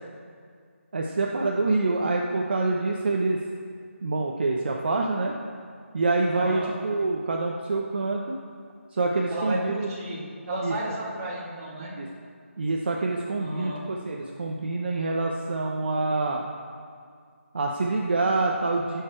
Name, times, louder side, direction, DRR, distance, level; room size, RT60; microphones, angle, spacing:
voice 1, 0.9-3.4 4.0-5.3 5.9-8.4 8.9-9.9 10.6-10.7 11.8-12.1 12.6-16.4 17.5-19.0, right 3 dB, 45° right, 0 dB, 0.8 m, -26 dB
voice 2, 6.3-6.7 9.3-11.9 13.4-13.8, right 1 dB, 20° right, -6 dB, 2.1 m, -33 dB
15.0 x 6.8 x 4.5 m, 2.1 s
figure-of-eight pair, 170°, 7 cm